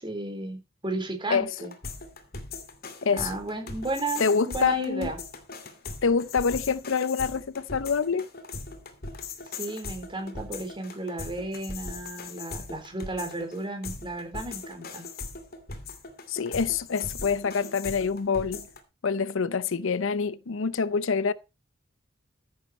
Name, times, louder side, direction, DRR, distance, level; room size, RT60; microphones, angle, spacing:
voice 1, 0.0-1.7 3.2-5.2 9.6-15.1, right 2 dB, 25° right, 3.9 m, -34 dB
sound 1, 1.6-18.8, left 3 dB, 50° left, 2.5 m, -39 dB
voice 2, 4.2-5.1 6.0-8.2 16.3-18.7 19.0-21.3, left 5 dB, 70° left, 0.6 m, -26 dB
14.5 x 8.7 x 4.2 m
head